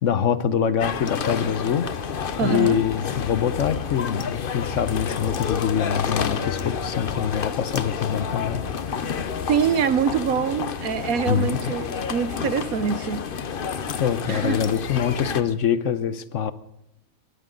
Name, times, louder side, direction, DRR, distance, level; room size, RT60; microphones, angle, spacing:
voice 1, 0.0-1.8 2.4-8.6 11.3-11.6 14.0-16.5, left 8 dB, 65° left, 1.1 m, -24 dB
sound 1, 0.8-15.4, left 6 dB, 45° left, 0.9 m, -29 dB
voice 2, 2.4-2.8 9.5-13.2 14.3-14.6, right 7 dB, 75° right, 1.3 m, -24 dB
22.5 x 13.5 x 3.9 m
omnidirectional pair, 1.5 m